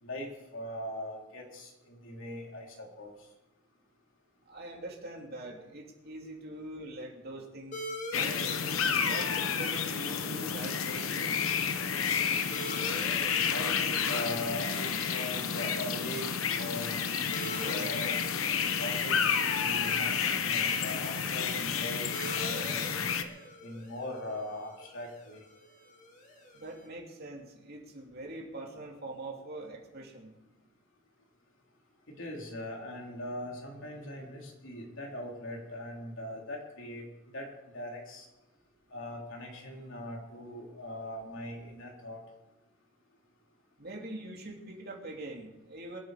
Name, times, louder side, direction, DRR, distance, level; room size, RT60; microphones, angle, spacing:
voice 1, 0.0-3.1 13.5-18.2 18.8-19.2 19.6-22.1 22.3-23.0 23.6-25.4 32.1-38.2 38.9-42.2, left 1 dB, 65° left, 0 dB, 3.4 m, -40 dB
voice 2, 4.5-7.9 8.1-8.5 9.1-11.4 26.5-30.3 43.8-46.0, right 2 dB, 50° right, 1 dB, 2.9 m, -43 dB
sound 1, 7.7-26.9, left 1 dB, 35° left, 2.9 m, -46 dB
sound 2, 8.1-23.2, left 6 dB, 80° left, 1.1 m, -30 dB
23.5 x 9.2 x 5.0 m, 0.98 s
head